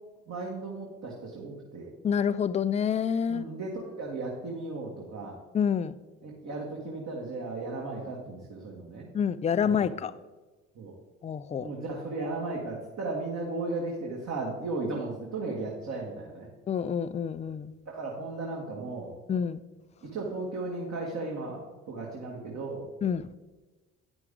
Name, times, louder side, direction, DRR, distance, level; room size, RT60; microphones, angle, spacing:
voice 1, 0.3-1.9 3.3-5.4 6.2-9.1 9.6-9.9 10.8-10.9 11.6-16.5 17.9-19.1 20.0-21.6 21.9-22.8, right 3 dB, 45° right, -2 dB, 1.8 m, -35 dB
voice 2, 2.0-3.5 5.5-6.0 9.1-10.1 11.2-11.7 16.7-17.7 19.3-19.6 23.0-23.3, left 7 dB, 20° left, 14 dB, 0.4 m, -27 dB
9.6 x 6.0 x 3.7 m, 1.2 s
hypercardioid pair, 60°, 37 cm